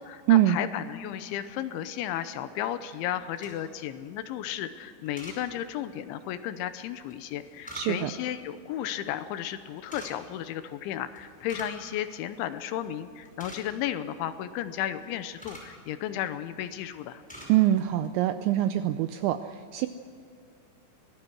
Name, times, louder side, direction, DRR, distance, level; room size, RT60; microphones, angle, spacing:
voice 1, 0.0-17.2, left 11 dB, 80° left, 11 dB, 3.0 m, -34 dB
sound 1, 3.3-3.8 5.0-5.4 7.1-8.2 9.8-10.1 11.1-11.8 12.1-12.2 12.7-12.9 13.1-13.9 14.8-15.7 16.5-16.7 17.0-17.5 17.9-18.1, equal, ahead, 4.6 m, -45 dB
voice 2, 7.7-8.1 17.5-19.9, right 13 dB, 85° right, 10 dB, 2.6 m, -24 dB
25.0 x 18.0 x 6.2 m, 2.4 s
omnidirectional pair, 5.8 m